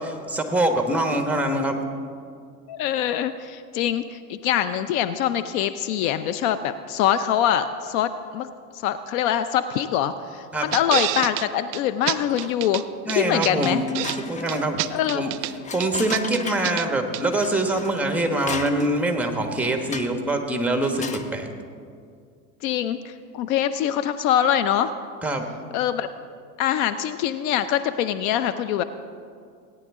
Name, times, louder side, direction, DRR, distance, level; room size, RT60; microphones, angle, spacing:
voice 1, 0.0-1.8 10.5-10.7 13.1-13.8 14.2-14.8 15.1-15.3 15.7-21.5 25.2-25.5, right 1 dB, 5° right, 4 dB, 1.3 m, -24 dB
voice 2, 2.7-8.5 8.7-13.8 14.9-15.2 22.6-24.9 25.7-26.1 26.6-28.8, left 10 dB, 60° left, 12 dB, 0.6 m, -24 dB
sound 1, 10.7-11.5 11.7-11.8 12.1-12.8 13.1-14.2 14.5-15.5 15.8-16.9 17.1-17.2, right 17 dB, 50° right, 0.5 m, -27 dB
sound 2, 12.2-12.8 13.2-13.3 13.7-16.8 17.3-19.1 19.9-20.3 20.7-21.3, left 5 dB, 15° left, 0.5 m, -36 dB
18.0 x 10.0 x 3.6 m, 2.2 s
hypercardioid pair, 95°, 48 cm